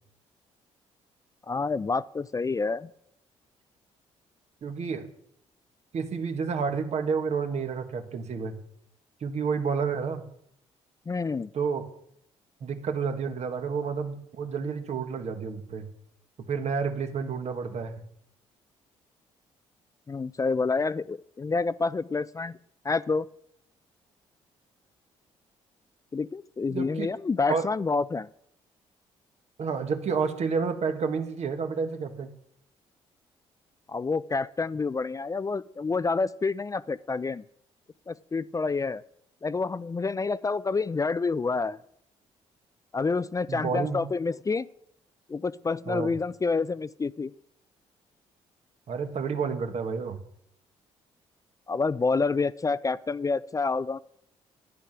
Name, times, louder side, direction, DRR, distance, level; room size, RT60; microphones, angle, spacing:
voice 1, 1.5-2.9 11.1-11.5 20.1-22.6 22.8-23.3 26.1-28.3 33.9-37.4 38.1-39.0 39.4-41.8 42.9-44.7 45.3-47.3 51.7-54.0, left 4 dB, 25° left, 17 dB, 0.4 m, -28 dB
voice 2, 4.6-5.1 5.9-8.6 9.2-10.2 11.5-11.9 12.6-15.9 16.4-18.1 26.7-27.1 27.5-27.7 29.6-32.3 43.5-44.0 45.9-46.1 48.9-50.2, right 5 dB, 60° right, 7 dB, 1.6 m, -30 dB
10.0 x 9.1 x 6.0 m, 0.74 s
supercardioid pair, 55°, 13 cm